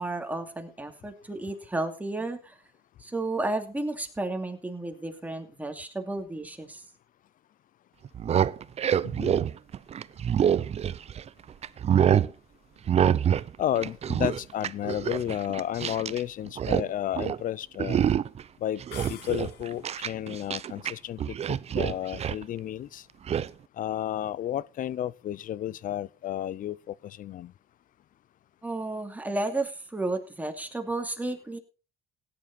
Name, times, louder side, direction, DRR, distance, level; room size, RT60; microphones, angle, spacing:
voice 1, 0.0-2.6 3.0-6.8 28.6-31.6, right 2 dB, 10° right, 2.6 m, -32 dB
sound 1, 8.0-11.3 11.6-12.3 12.9-13.5 13.7-16.2 16.5-16.9 17.1-17.4 17.8-18.4 18.8-20.9 21.2-22.4 23.3-23.5, right 9 dB, 40° right, 0.6 m, -26 dB
voice 2, 9.0-9.4 13.6-18.0 18.6-18.8 19.1-23.1 23.8-27.5, left 11 dB, 55° left, 0.6 m, -32 dB
sound 2, 18.9-20.0, left 11 dB, 80° left, 1.9 m, -45 dB
16.5 x 9.9 x 4.3 m
cardioid pair, 110°, 17 cm